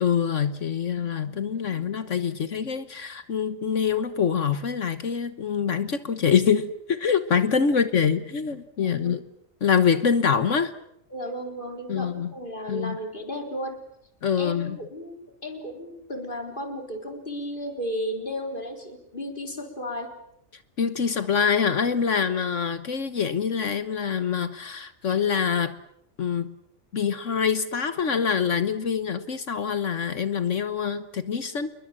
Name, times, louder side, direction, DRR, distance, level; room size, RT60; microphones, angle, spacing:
voice 1, 0.0-9.2 9.6-10.7 11.9-12.3 12.7-13.0 14.2-14.8 20.8-25.7 26.2-26.5 26.9-31.7, left 6 dB, 65° left, 12 dB, 1.5 m, -25 dB
voice 2, 8.8-9.2 11.1-13.8 14.4-20.1, equal, 35° left, 4 dB, 4.4 m, -34 dB
28.0 x 22.5 x 7.7 m, 0.76 s
omnidirectional pair, 1.4 m